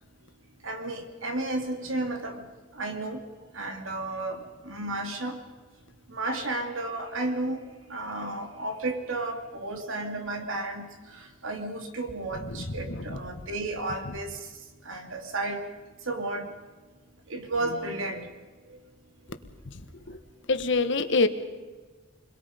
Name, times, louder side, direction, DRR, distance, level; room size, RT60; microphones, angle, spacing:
voice 1, 0.6-2.5 2.7-3.2 3.5-5.4 6.1-7.6 7.9-14.4 14.8-15.6 16.1-16.4 17.3-18.3 18.7-18.8, right 2 dB, 85° right, 5 dB, 2.6 m, -33 dB
voice 2, 12.4-13.5 19.7-20.2 20.5-21.3, left 3 dB, 65° left, 10 dB, 1.4 m, -27 dB
29.0 x 22.5 x 5.2 m, 1.3 s
head